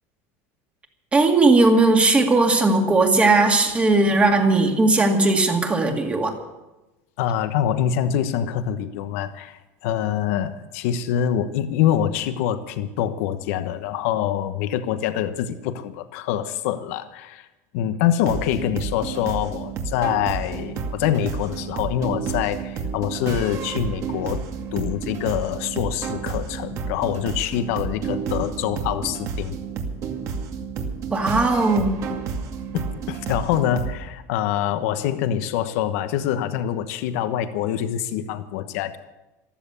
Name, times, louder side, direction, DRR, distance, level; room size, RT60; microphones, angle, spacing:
voice 1, 1.1-6.3 31.1-32.0, right 2 dB, 15° right, 3 dB, 2.2 m, -18 dB
voice 2, 7.2-17.5 17.7-24.4 24.7-29.6 32.7-39.0, left 10 dB, 75° left, 10 dB, 1.1 m, -25 dB
sound 1, 18.2-33.9, right 6 dB, 45° right, 2.3 m, -31 dB
14.5 x 13.5 x 7.0 m, 1.0 s
supercardioid pair, 150°, 8 cm